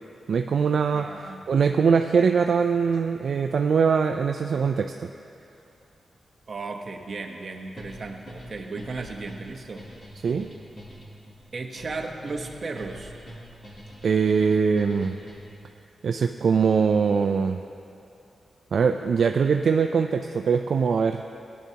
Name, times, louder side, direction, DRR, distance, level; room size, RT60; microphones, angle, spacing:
voice 1, 0.3-5.1 10.2-10.5 14.0-15.1 16.0-17.6 18.7-21.2, right 6 dB, 65° right, 5 dB, 0.3 m, -22 dB
voice 2, 0.9-1.4 6.5-9.8 11.5-13.1, right 3 dB, 45° right, 2 dB, 1.0 m, -35 dB
sound 1, 7.8-15.7, equal, 45° left, 2.9 m, -44 dB
18.0 x 10.5 x 2.9 m, 2.7 s
wide cardioid pair, 120°, 0 cm